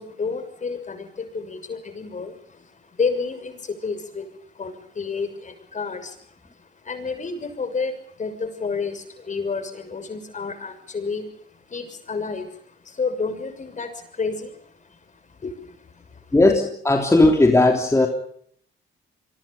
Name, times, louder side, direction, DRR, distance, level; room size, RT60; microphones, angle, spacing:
voice 1, 0.0-16.4, left 4 dB, 40° left, 8 dB, 6.5 m, -31 dB
voice 2, 16.3-18.1, left 2 dB, 15° left, 2 dB, 3.4 m, -16 dB
27.5 x 23.5 x 5.7 m, 0.65 s
cardioid pair, 90°, 20 cm